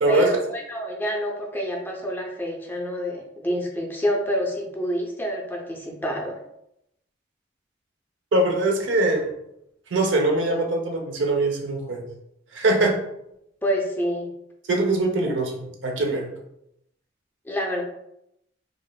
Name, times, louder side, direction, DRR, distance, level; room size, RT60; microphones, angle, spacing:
voice 1, 0.1-6.4 13.6-14.3 17.5-17.8, equal, 10° left, 1 dB, 0.4 m, -27 dB
voice 2, 8.3-9.3 9.9-12.0 12.5-12.9 14.7-16.3, right 2 dB, 80° right, 2 dB, 0.7 m, -22 dB
4.7 x 2.4 x 2.3 m, 0.80 s
head